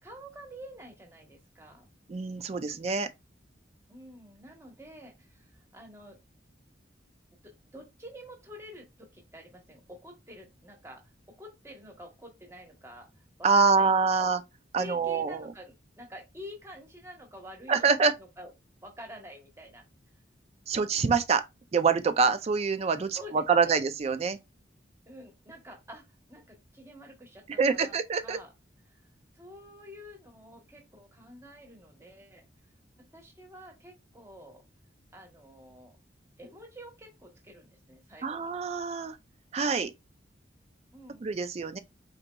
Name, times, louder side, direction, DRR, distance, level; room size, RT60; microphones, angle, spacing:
voice 1, 0.0-1.9 3.9-6.2 7.4-13.9 14.2-14.3 14.8-17.9 18.2-18.5 18.8-19.8 23.1-23.8 25.1-28.0 28.2-28.5 28.9-29.1 29.3-32.5 33.1-34.6 35.1-36.0 36.4-38.5 40.9-41.3, equal, 15° right, 1.0 m, -48 dB
voice 2, 2.1-3.1 13.4-14.4 14.7-15.5 17.7-18.1 20.7-21.4 21.7-23.2 23.5-24.4 27.6-28.4 38.2-39.2 39.5-39.9 41.2-41.8, right 5 dB, 35° right, 0.3 m, -25 dB
4.0 x 3.9 x 2.2 m
head